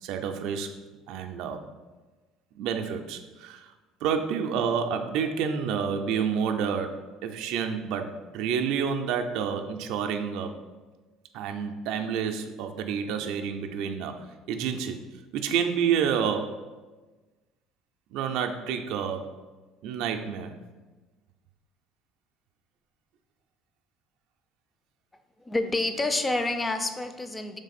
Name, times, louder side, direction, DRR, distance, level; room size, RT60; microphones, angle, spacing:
voice 1, 0.0-0.7 1.1-1.7 2.6-3.7 4.0-10.6 11.3-15.0 15.3-16.6 18.1-19.3 19.8-20.5, right 7 dB, 70° right, 5 dB, 0.3 m, -29 dB
voice 2, 25.4-27.6, left 2 dB, 20° left, 9 dB, 0.4 m, -28 dB
3.5 x 3.2 x 4.0 m, 1.2 s
supercardioid pair, 85°, 0 cm